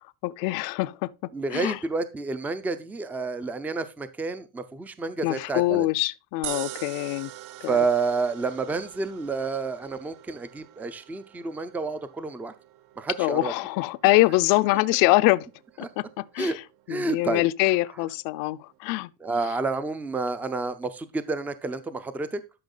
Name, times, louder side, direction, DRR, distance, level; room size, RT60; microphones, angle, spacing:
voice 1, 0.2-1.8 5.2-7.3 7.6-7.8 13.2-15.5 15.8-16.6 16.9-19.1, left 20 dB, 55° left, 0.6 m, -24 dB
voice 2, 1.3-5.9 7.7-12.5 13.0-13.5 15.8-15.9 16.4-16.6 16.9-17.7 19.2-22.4, right 4 dB, 5° right, 0.4 m, -29 dB
sound 1, 6.4-18.8, right 14 dB, 65° right, 0.8 m, -45 dB
12.0 x 5.7 x 3.8 m
cardioid pair, 170°, 41 cm